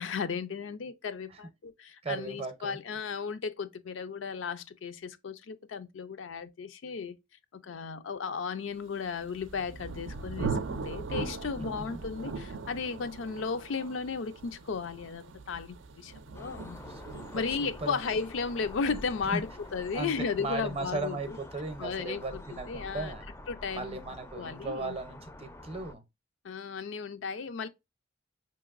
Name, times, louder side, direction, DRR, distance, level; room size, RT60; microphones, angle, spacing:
voice 1, 0.0-7.1 7.6-16.8 17.3-21.4 21.8-22.4 22.7-23.1 23.5-24.0 24.4-25.0 26.4-27.7, left 5 dB, 80° left, 0.4 m, -35 dB
voice 2, 2.0-2.8 11.6-11.7 16.9-18.1 19.2-19.4 19.9-23.3 23.7-26.0, right 3 dB, 30° right, 0.6 m, -37 dB
Thunder, 9.1-20.6, right 4 dB, 75° right, 0.5 m, -40 dB
sound 1, 16.3-25.9, left 1 dB, 15° left, 0.4 m, -47 dB
5.1 x 2.9 x 2.4 m
head